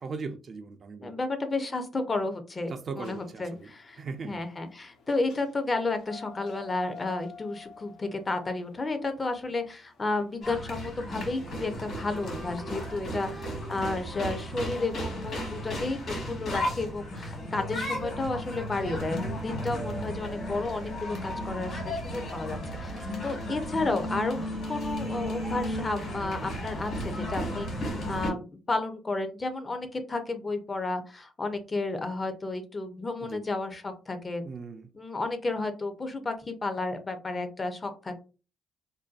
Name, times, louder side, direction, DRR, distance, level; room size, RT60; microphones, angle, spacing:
voice 1, 0.0-1.1 2.7-3.7 4.0-4.4 13.1-13.3 22.9-23.2 33.2-33.5 34.4-34.9, right 4 dB, 50° right, 0.3 m, -39 dB
voice 2, 1.0-4.0 4.2-22.9 23.2-24.4 24.7-27.7 28.1-34.4 34.9-38.2, left 3 dB, 30° left, 0.5 m, -32 dB
sound 1, 3.0-17.7, left 6 dB, 75° left, 0.6 m, -51 dB
sound 2, 10.4-28.3, equal, 60° left, 1.2 m, -34 dB
2.6 x 2.2 x 2.3 m
cardioid pair, 90°, 0 cm